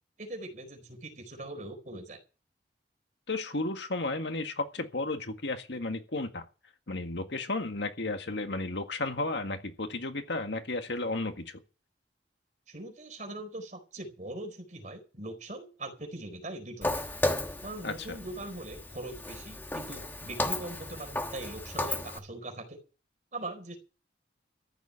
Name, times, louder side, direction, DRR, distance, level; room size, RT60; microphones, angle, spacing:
voice 1, 0.2-2.2 12.7-16.9 17.6-22.8 23.3-23.8, right 2 dB, 40° right, 4.5 m, -41 dB
voice 2, 3.3-6.5 6.9-11.6 17.8-18.2, left 2 dB, 75° left, 1.8 m, -33 dB
Walk footsteps, 16.8-22.2, left 2 dB, 10° left, 1.3 m, -34 dB
14.0 x 7.2 x 9.9 m
head